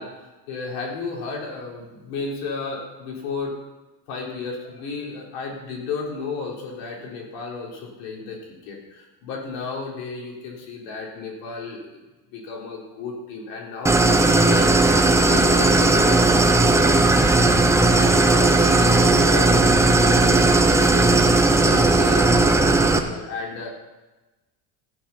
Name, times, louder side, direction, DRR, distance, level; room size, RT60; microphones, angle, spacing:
voice 1, 0.0-3.6 4.1-12.0 12.3-15.0 15.3-17.3 17.7-20.4 20.6-21.2 21.6-22.3 22.6-23.7, left 4 dB, 85° left, -1 dB, 3.9 m, -33 dB
Idling, 13.9-23.0, right 2 dB, 5° right, 0.7 m, -17 dB
15.0 x 7.3 x 5.7 m, 1.1 s
cardioid pair, 135°, 46 cm